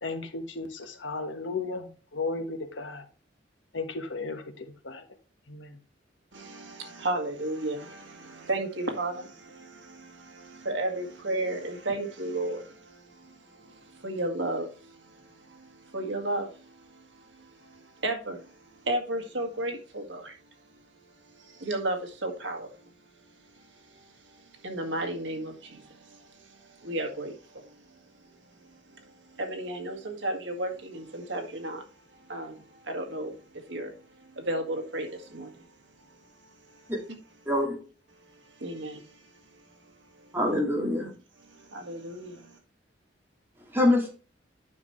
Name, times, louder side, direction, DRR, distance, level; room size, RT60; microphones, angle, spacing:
voice 1, 0.0-3.0 3.7-5.0 5.5-5.8, left 3 dB, 85° left, 1.3 m, -35 dB
voice 2, 6.3-20.4 21.3-22.8 23.6-27.8 28.9-31.8 32.1-33.4 33.7-35.7 36.4-36.9 38.3-39.2 40.2-40.3 41.5-42.6, right 1 dB, 80° right, 1.9 m, -34 dB
voice 3, 37.5-37.8 40.3-41.1 43.7-44.1, left 1 dB, 10° right, 2.5 m, -24 dB
9.5 x 5.9 x 3.2 m
head